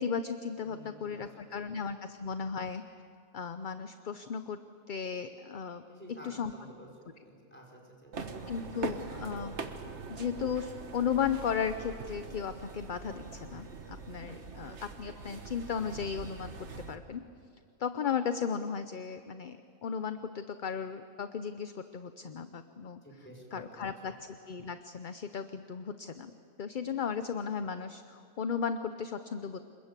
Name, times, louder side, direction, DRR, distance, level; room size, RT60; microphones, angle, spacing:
voice 1, 0.0-2.8 3.3-4.6 4.9-6.5 8.5-9.6 10.1-17.2 17.8-23.0 23.5-26.3 26.6-29.6, left 7 dB, 45° left, 10 dB, 0.8 m, -35 dB
voice 2, 0.6-1.8 5.9-6.9 7.2-8.9 23.0-24.2, equal, 10° left, -1 dB, 5.2 m, -52 dB
sound 1, 8.1-16.9, right 4 dB, 55° right, 1.6 m, -42 dB
27.0 x 21.5 x 8.3 m, 2.4 s
omnidirectional pair, 1.4 m